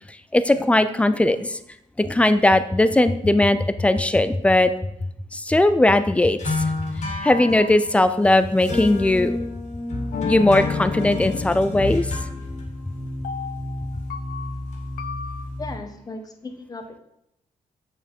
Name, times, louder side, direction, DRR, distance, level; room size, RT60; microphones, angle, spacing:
voice 1, 0.3-1.6 2.0-4.7 5.3-6.7 7.2-9.4 10.2-12.1, left 1 dB, 10° left, 12 dB, 0.4 m, -19 dB
sound 1, 6.4-15.8, left 2 dB, 55° left, 2.1 m, -30 dB
sound 2, 10.1-12.4 13.2-15.4, left 6 dB, 85° left, 0.6 m, -33 dB
voice 2, 15.6-17.0, left 2 dB, 25° left, 6 dB, 0.9 m, -36 dB
7.3 x 5.6 x 4.4 m, 0.78 s
cardioid pair, 140°, 15 cm